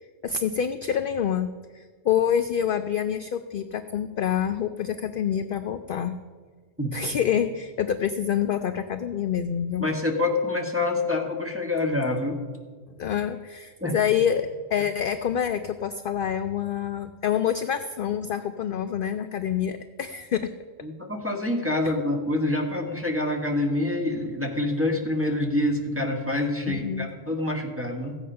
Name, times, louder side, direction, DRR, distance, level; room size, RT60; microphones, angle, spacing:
voice 1, 0.2-1.5 1.7-6.1 6.9-9.9 13.0-20.5 26.7-27.1, left 8 dB, 60° left, 9 dB, 0.5 m, -27 dB
voice 2, 9.8-12.4 13.8-14.0 20.8-28.2, left 2 dB, 10° right, 1 dB, 1.3 m, -26 dB
15.0 x 8.6 x 5.6 m, 1.5 s
omnidirectional pair, 1.3 m